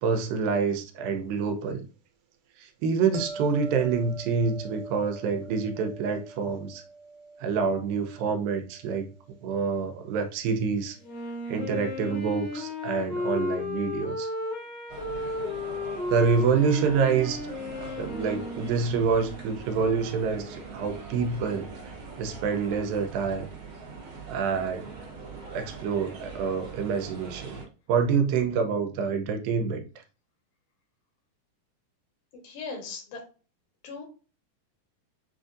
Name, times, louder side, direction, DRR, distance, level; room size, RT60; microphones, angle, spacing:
voice 1, 0.0-1.9 2.6-6.8 7.4-9.1 9.4-11.0 11.5-14.3 16.1-17.4 17.8-21.7 22.2-23.5 24.3-24.9 25.5-27.6 27.9-29.8, right 5 dB, 90° right, 2.4 m, -27 dB
sound 1, 3.1-10.1 15.4-15.6, right 3 dB, 75° right, 2.2 m, -43 dB
Wind instrument woodwind instrument, 11.0-19.6, left 2 dB, 55° left, 1.5 m, -34 dB
sound 2, 14.9-27.6, right 4 dB, 55° right, 1.6 m, -42 dB
voice 2, 32.3-33.2 33.8-34.0, left 4 dB, 75° left, 2.9 m, -38 dB
7.5 x 2.6 x 2.5 m
omnidirectional pair, 4.1 m